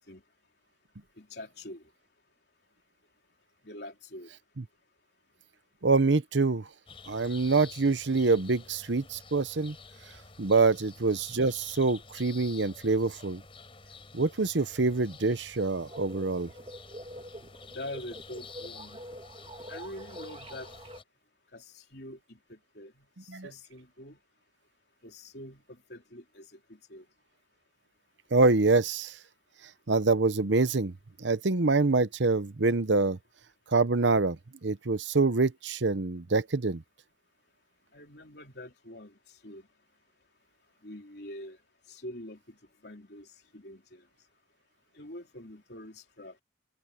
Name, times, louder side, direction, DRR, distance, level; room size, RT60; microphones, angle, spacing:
voice 1, 1.2-1.8 3.6-4.3 17.7-19.0 19.7-20.7 21.5-24.2 25.0-27.0 37.9-39.1 39.4-39.7 40.8-41.6 41.9-42.6 42.8-43.3 43.5-44.0 45.0-46.4, left 1 dB, 60° left, 3.7 m, -45 dB
voice 2, 5.8-6.7 7.1-9.7 10.4-13.4 14.1-16.5 23.3-23.5 28.3-29.1 29.9-30.9 31.2-33.2 33.7-34.4 34.6-36.8, right 3 dB, 75° right, 0.9 m, -25 dB
sound 1, 6.9-21.0, left 4 dB, 30° left, 4.5 m, -50 dB
sound 2, 15.8-21.0, right 1 dB, 30° right, 2.4 m, -46 dB
open air
head